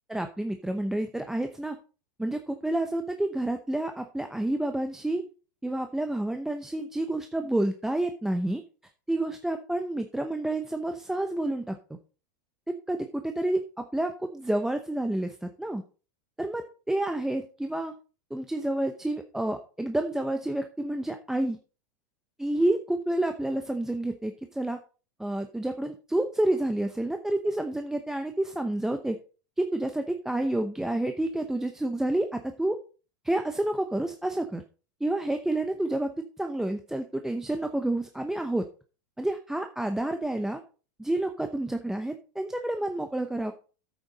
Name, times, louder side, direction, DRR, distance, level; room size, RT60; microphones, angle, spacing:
voice 1, 0.1-1.8 2.2-5.2 5.6-8.6 9.1-11.8 12.7-15.8 16.4-17.9 18.3-21.6 22.4-24.8 25.2-29.2 29.6-32.8 33.2-34.6 35.0-38.6 39.2-40.6 41.0-43.5, right 1 dB, 5° right, 6 dB, 0.8 m, -29 dB
9.4 x 8.3 x 4.1 m, 0.35 s
supercardioid pair, 125°, 10 cm